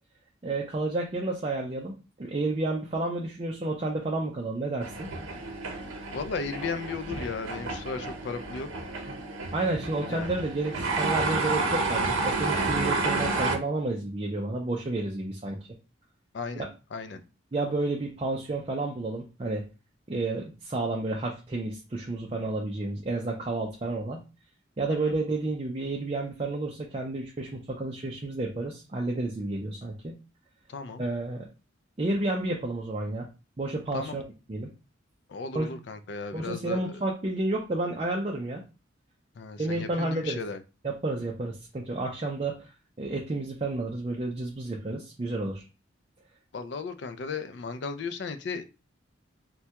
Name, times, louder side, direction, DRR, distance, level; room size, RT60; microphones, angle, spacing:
voice 1, 0.4-5.1 9.5-15.6 16.6-16.7 17.5-19.7 20.1-24.2 24.8-30.2 31.0-31.5 32.0-33.3 33.6-34.2 34.5-34.7 35.5-35.7 36.3-38.6 39.6-40.4 40.8-42.7 43.0-45.6, right 2 dB, 30° right, 0.4 m, -31 dB
sound 1, 4.8-13.6, right 3 dB, 85° right, 0.7 m, -30 dB
voice 2, 6.1-8.7 10.1-10.3 16.3-17.2 24.9-25.2 30.7-31.0 33.9-34.2 35.3-37.0 39.4-40.6 46.5-48.6, left 4 dB, 60° left, 0.4 m, -35 dB
3.3 x 2.2 x 2.8 m
head